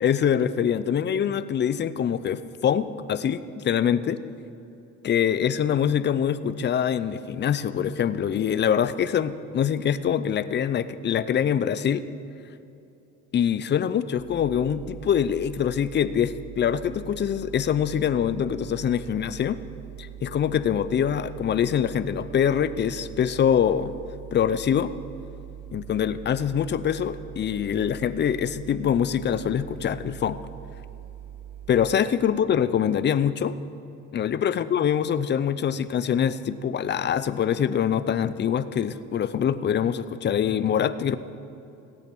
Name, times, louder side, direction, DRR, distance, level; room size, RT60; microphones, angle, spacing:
voice 1, 0.0-4.2 5.0-12.0 13.3-19.6 20.0-23.9 24.3-24.9 25.7-30.4 31.7-33.5 34.1-41.2, left 8 dB, 35° left, 13 dB, 0.5 m, -24 dB
sound 1, 14.2-31.8, right 11 dB, 5° left, 2.5 m, -42 dB
16.5 x 8.7 x 6.1 m, 2.8 s
cardioid pair, 115°, 33 cm